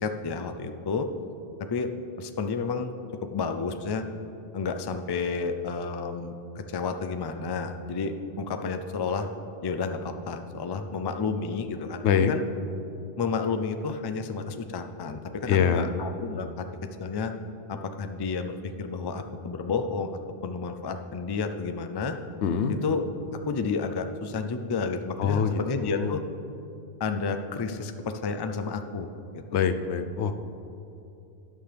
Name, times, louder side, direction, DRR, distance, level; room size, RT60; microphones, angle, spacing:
voice 1, 0.0-1.1 1.6-1.9 2.2-2.9 3.2-4.0 4.5-9.3 9.6-12.4 13.2-16.7 17.0-17.3 17.7-20.1 20.4-22.2 22.7-23.0 23.3-26.2 27.0-29.6, left 4 dB, 40° left, 7 dB, 0.3 m, -31 dB
voice 2, 15.5-15.9 22.4-22.7 25.2-26.2 29.5-30.3, left 7 dB, 85° left, 9 dB, 0.9 m, -24 dB
13.0 x 9.2 x 3.4 m, 2.8 s
omnidirectional pair, 1.1 m